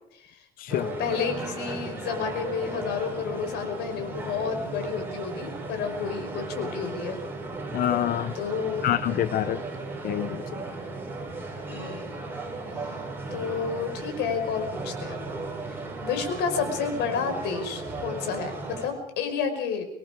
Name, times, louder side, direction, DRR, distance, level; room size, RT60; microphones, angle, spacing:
voice 1, 0.7-7.2 8.3-8.9 11.7-12.2 12.8-13.0 13.3-15.2 16.0-19.8, left 6 dB, 85° left, 6 dB, 5.3 m, -30 dB
sound 1, 0.7-18.9, right 3 dB, 10° right, 7.9 m, -36 dB
voice 2, 7.7-8.3 8.8-9.6 10.0-10.4, left 12 dB, 60° left, 14 dB, 0.7 m, -26 dB
26.0 x 21.5 x 5.1 m, 0.77 s
cardioid pair, 110°, 17 cm